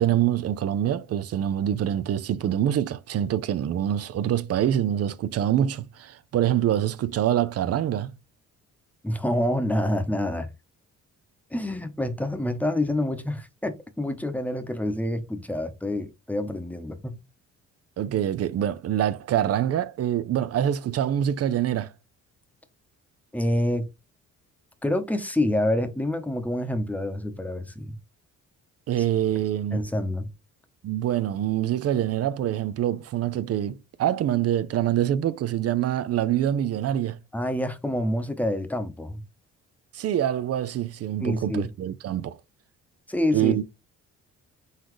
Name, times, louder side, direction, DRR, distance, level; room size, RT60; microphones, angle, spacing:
voice 1, 0.0-8.1 18.0-21.9 28.9-29.8 30.8-37.2 39.9-42.4 43.3-43.6, right 11 dB, 55° right, 0.5 m, -25 dB
voice 2, 9.0-10.5 11.5-17.1 23.3-23.9 24.8-28.0 29.7-30.3 37.3-39.2 41.2-41.7 43.1-43.6, left 1 dB, 5° left, 0.9 m, -27 dB
4.0 x 3.8 x 3.1 m
cardioid pair, 90°, 30 cm